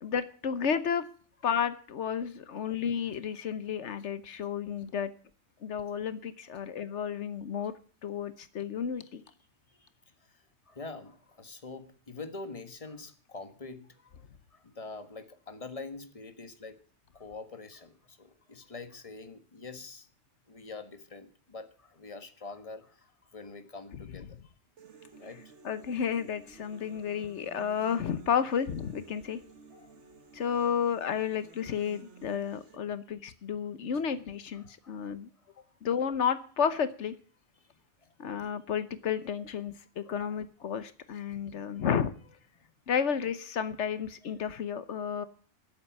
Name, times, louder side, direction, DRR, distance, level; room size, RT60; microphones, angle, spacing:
voice 1, 0.0-1.0 1.4-5.1 5.6-7.7 8.0-9.2 25.6-29.4 30.3-35.3 35.8-37.1 38.2-42.1 42.9-45.2, left 7 dB, 85° left, 13 dB, 1.2 m, -32 dB
voice 2, 10.2-14.2 14.5-16.8 17.1-20.1 20.5-24.4 25.2-25.5 29.7-30.0 34.5-35.1 35.4-35.7 38.0-38.1 40.0-40.4 40.6-40.8 42.6-42.7 44.2-44.5, left 3 dB, 30° left, 9 dB, 1.6 m, -46 dB
sound 1, 24.8-32.8, right 4 dB, 80° right, 1.8 m, -54 dB
12.5 x 8.4 x 9.3 m, 0.43 s
omnidirectional pair, 1.2 m